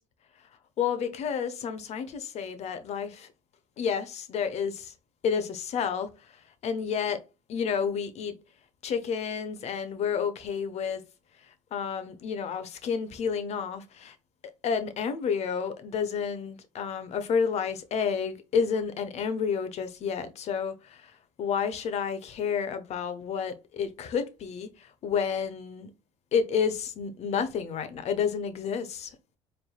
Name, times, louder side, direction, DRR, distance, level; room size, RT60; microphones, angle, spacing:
voice 1, 0.8-3.3 3.8-4.9 5.2-6.1 6.6-7.2 7.5-8.4 8.8-11.0 11.7-14.2 14.6-21.1 21.4-24.7 25.0-25.9 26.3-29.1, left 6 dB, 55° left, 0.9 m, -30 dB
4.3 x 3.4 x 2.3 m
supercardioid pair, 75°, 13 cm